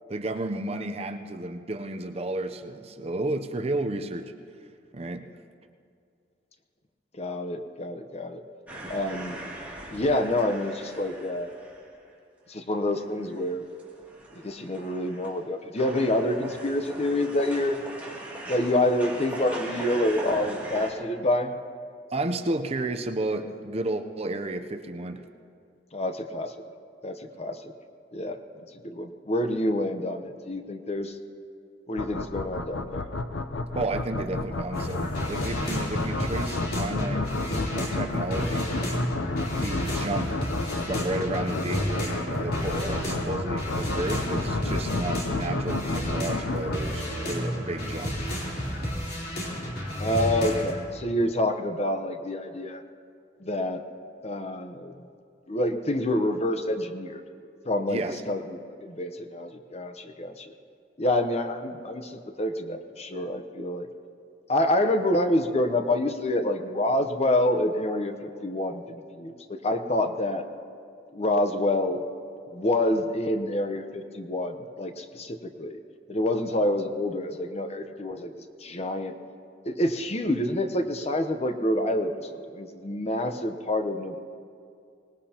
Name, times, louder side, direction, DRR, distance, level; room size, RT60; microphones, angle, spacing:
voice 1, 0.1-4.3 4.9-5.3 22.1-25.3 33.7-37.3 37.7-38.7 39.6-40.4 40.9-48.2 57.9-58.2, right 2 dB, 35° right, 7 dB, 0.6 m, -32 dB
voice 2, 7.2-8.4 8.9-9.4 9.9-11.5 12.5-13.6 14.3-17.8 18.5-21.6 25.9-26.5 27.0-27.7 28.1-31.2 31.9-33.0 50.0-52.8 53.4-53.8 54.2-55.0 55.5-57.2 57.6-58.0 58.3-60.5 61.0-63.9 64.5-70.4 71.1-72.0 72.5-75.8 76.1-78.3 78.6-79.1 79.6-84.2, left 1 dB, 35° left, 7 dB, 0.8 m, -27 dB
sound 1, 8.7-12.1 12.5-12.6 13.0-15.5 15.8-20.9, right 1 dB, 10° right, 2.6 m, -40 dB
sound 2, 32.0-46.8, left 2 dB, 85° left, 0.6 m, -31 dB
sound 3, 34.7-50.7, equal, 55° left, 3.6 m, -32 dB
24.5 x 19.0 x 2.9 m, 2.4 s
head